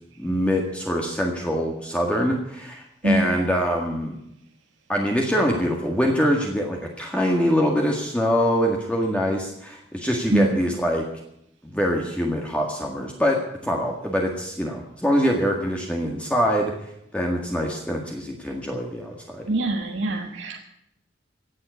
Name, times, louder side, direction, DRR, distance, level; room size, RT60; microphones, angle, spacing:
voice 1, 0.2-4.2 4.9-11.1 11.6-16.7 17.1-19.5, equal, 5° left, 0 dB, 1.8 m, -24 dB
voice 2, 3.0-3.3 10.3-10.6 19.5-20.7, right 1 dB, 85° right, 2 dB, 1.4 m, -23 dB
17.0 x 7.9 x 9.7 m, 0.77 s
head